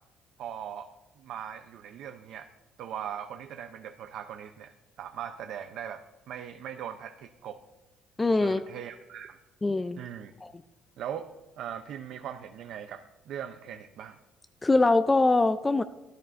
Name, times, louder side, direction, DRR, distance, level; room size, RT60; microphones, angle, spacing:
voice 1, 0.4-0.9 1.2-2.5 2.8-7.6 8.4-9.4 10.0-10.3 11.0-11.3 11.6-14.2, right 9 dB, 70° right, 7 dB, 0.5 m, -40 dB
voice 2, 8.2-8.6 9.6-10.0 10.4-10.5 14.6-15.8, left 3 dB, 15° left, 11 dB, 0.3 m, -23 dB
12.5 x 11.0 x 2.5 m, 1.1 s
cardioid pair, 110°, 0 cm